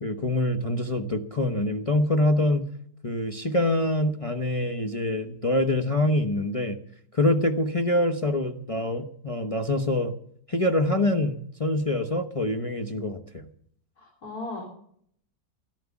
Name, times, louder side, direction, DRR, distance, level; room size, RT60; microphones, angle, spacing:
voice 1, 0.0-2.7 3.0-6.8 7.1-10.1 10.5-13.5, left 1 dB, 30° left, 4 dB, 0.7 m, -25 dB
voice 2, 14.0-14.6, left 2 dB, 50° left, -2 dB, 4.6 m, -36 dB
13.5 x 12.0 x 7.2 m, 0.64 s
omnidirectional pair, 2.1 m